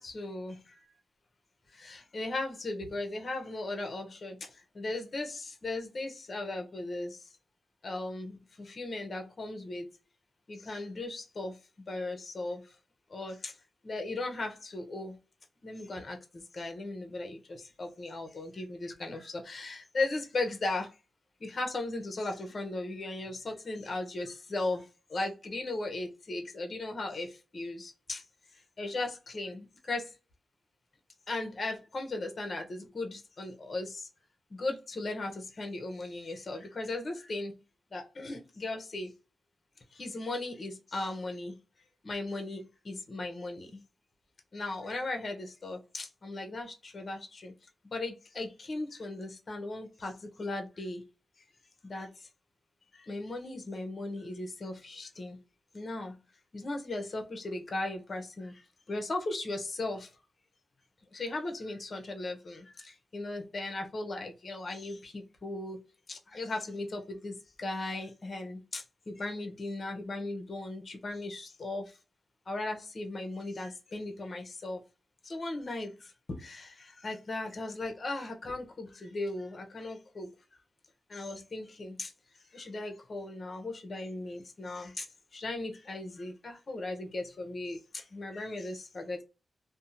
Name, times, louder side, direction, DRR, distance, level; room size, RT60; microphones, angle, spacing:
voice 1, 0.0-0.6 1.8-4.4 4.7-7.2 7.8-9.9 10.5-11.5 11.9-12.6 13.1-13.5 13.8-15.2 15.6-20.9 21.4-24.8 25.1-28.2 28.8-30.1 31.3-34.1 34.6-37.5 37.9-39.1 40.0-41.5 42.0-43.8 44.5-47.5 47.9-51.0 51.8-52.1 53.1-55.4 55.7-56.1 56.5-58.5 58.9-60.1 61.1-65.8 66.1-71.9 72.5-74.8 75.2-75.9 76.3-80.3 81.1-82.1 82.5-85.1 85.3-89.2, left 2 dB, 40° left, 0.7 m, -37 dB
2.6 x 2.0 x 2.8 m
wide cardioid pair, 125°, 0 cm